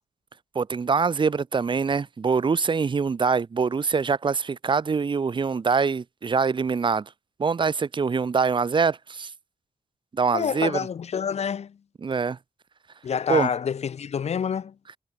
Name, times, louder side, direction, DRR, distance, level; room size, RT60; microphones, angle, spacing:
voice 1, 0.5-7.0 7.4-9.3 10.1-10.8 12.0-12.4 13.3-13.5, right 5 dB, 45° right, 1.5 m, -24 dB
voice 2, 10.3-11.8 13.0-14.7, left 7 dB, 70° left, 2.4 m, -27 dB
cardioid pair, 95°, 12 cm